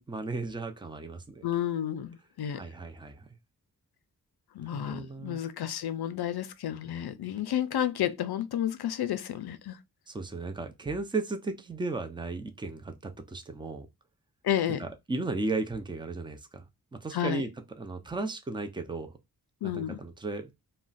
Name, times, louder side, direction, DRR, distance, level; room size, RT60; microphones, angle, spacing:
voice 1, 0.0-1.5 2.5-3.3 4.7-5.4 10.1-13.9 14.8-16.7 16.9-17.5 17.8-19.1 19.6-20.5, right 3 dB, 15° right, 0.5 m, -35 dB
voice 2, 1.4-2.6 4.5-9.8 14.4-14.8 17.1-17.4 19.6-20.0, left 10 dB, 85° left, 0.5 m, -31 dB
2.4 x 2.1 x 3.9 m
wide cardioid pair, 70°, 37 cm